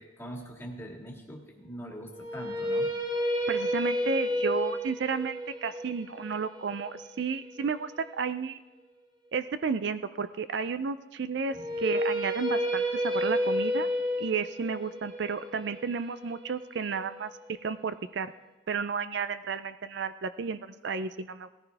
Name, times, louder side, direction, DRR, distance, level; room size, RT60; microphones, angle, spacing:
voice 1, 0.0-2.9, equal, 10° left, 0 dB, 1.8 m, -42 dB
sound 1, 2.1-8.2 11.5-17.5, equal, 20° right, 2.0 m, -31 dB
voice 2, 3.5-8.6 9.3-13.9 14.2-17.3 17.6-18.3 18.7-21.5, right 5 dB, 55° right, 12 dB, 0.4 m, -32 dB
17.5 x 14.0 x 3.4 m, 1.1 s
head